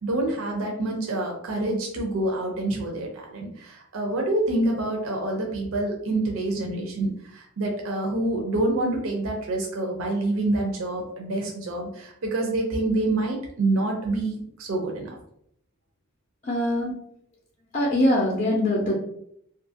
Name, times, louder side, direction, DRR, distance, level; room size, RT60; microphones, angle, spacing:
voice 1, 0.0-15.2, right 2 dB, 70° right, 0 dB, 0.5 m, -27 dB
voice 2, 16.5-16.9 17.7-19.0, left 1 dB, 35° left, -2 dB, 0.4 m, -22 dB
2.6 x 2.3 x 2.7 m, 0.70 s
head